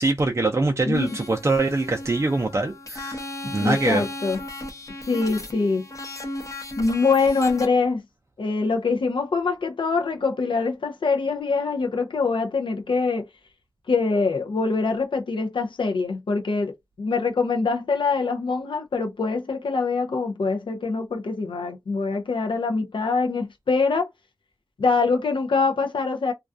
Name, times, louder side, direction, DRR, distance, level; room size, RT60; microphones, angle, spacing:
voice 1, 0.0-3.2 3.5-4.0, right 2 dB, 35° right, 0.4 m, -23 dB
voice 2, 0.8-1.2 3.4-4.4 5.1-5.9 6.8-8.0 8.4-13.3 13.9-16.7 17.0-24.1 24.8-26.3, left 4 dB, 70° left, 0.5 m, -24 dB
sound 1, 0.9-7.6, left 1 dB, 40° left, 0.7 m, -36 dB
2.3 x 2.2 x 2.5 m
wide cardioid pair, 60°, 9 cm